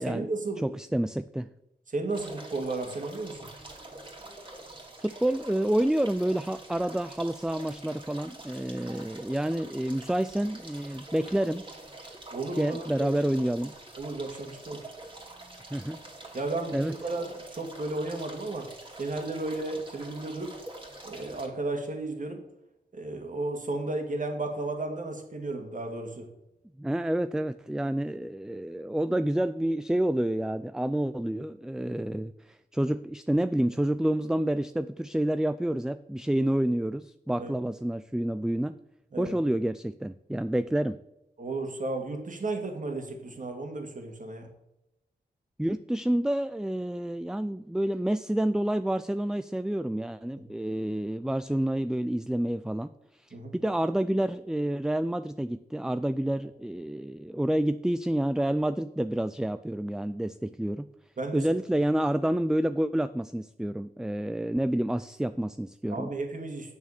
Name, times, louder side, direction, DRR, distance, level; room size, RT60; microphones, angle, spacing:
voice 1, 0.0-0.8 1.9-3.5 12.3-13.1 14.0-14.8 16.3-18.7 19.0-20.5 21.0-22.4 22.9-26.3 37.4-37.5 39.1-39.3 41.4-44.5 53.3-53.6 61.2-61.4 65.9-66.7, right 2 dB, 50° right, 3 dB, 2.2 m, -33 dB
voice 2, 0.6-1.5 5.0-11.6 12.6-13.8 14.7-14.8 15.7-16.0 16.7-16.9 26.8-38.8 39.2-41.0 45.6-60.9 61.3-66.1, right 1 dB, 5° right, 13 dB, 0.3 m, -29 dB
sound 1, 2.1-21.5, right 2 dB, 30° right, 2.6 m, -46 dB
8.8 x 6.4 x 6.7 m, 0.88 s
cardioid pair, 70°, 17 cm